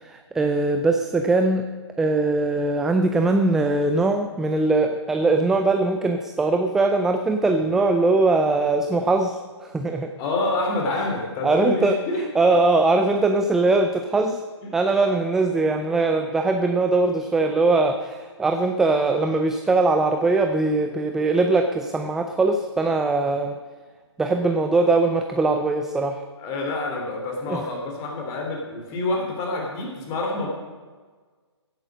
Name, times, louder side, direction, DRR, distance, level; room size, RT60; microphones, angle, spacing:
voice 1, 0.0-1.6 2.0-10.1 11.4-14.4 14.7-23.6 24.2-26.2 27.5-27.7, right 3 dB, 5° right, 6 dB, 0.3 m, -21 dB
voice 2, 10.2-12.2 15.1-15.2 26.4-30.5, left 2 dB, 25° left, 1 dB, 3.2 m, -27 dB
16.0 x 8.7 x 6.3 m, 1.4 s
figure-of-eight pair, 130°, 15 cm